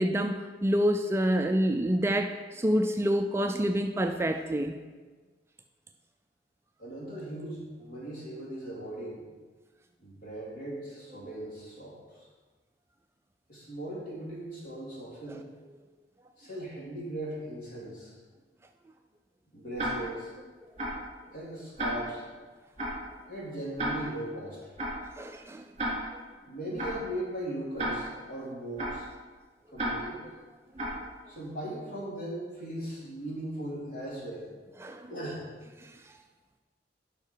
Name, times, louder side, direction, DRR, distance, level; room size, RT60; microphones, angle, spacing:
voice 1, 0.0-4.8 15.3-15.4 25.2-25.6 34.8-35.1, equal, 15° right, 5 dB, 0.3 m, -27 dB
voice 2, 6.8-9.2 10.0-12.0 13.5-15.4 16.4-18.1 19.5-20.3 21.3-22.2 23.3-24.6 26.4-29.1 29.7-30.2 31.3-34.5 35.1-35.4, right 1 dB, 50° left, -5 dB, 3.1 m, -38 dB
Tick-tock, 19.8-20.3 20.8-21.1 21.8-22.3 22.8-23.1 23.8-24.3 24.8-25.1 25.8-26.3 26.8-27.1 27.8-28.3 28.8-29.1 29.8-30.3 30.8-31.1, right 1 dB, 35° right, 3.1 m, -33 dB
11.5 x 5.7 x 4.6 m, 1.4 s
head